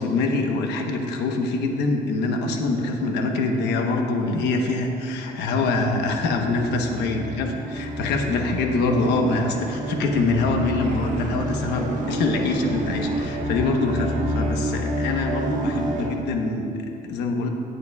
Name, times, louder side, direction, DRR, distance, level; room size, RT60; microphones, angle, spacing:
voice 1, 0.0-17.5, left 3 dB, 85° left, 3 dB, 1.1 m, -24 dB
sound 1, 4.7-16.1, right 1 dB, 50° right, 1.4 m, -29 dB
17.0 x 8.1 x 2.4 m, 2.6 s
cardioid pair, 110°, 17 cm